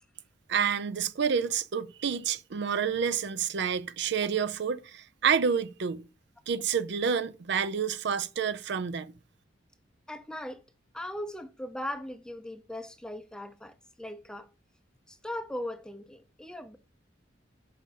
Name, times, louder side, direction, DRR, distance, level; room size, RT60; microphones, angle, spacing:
voice 1, 0.5-6.1 6.5-9.1, right 7 dB, 65° right, 0.5 m, -29 dB
voice 2, 10.1-10.6 10.9-14.5 15.1-16.8, left 1 dB, 5° left, 0.5 m, -39 dB
5.6 x 5.6 x 4.8 m
head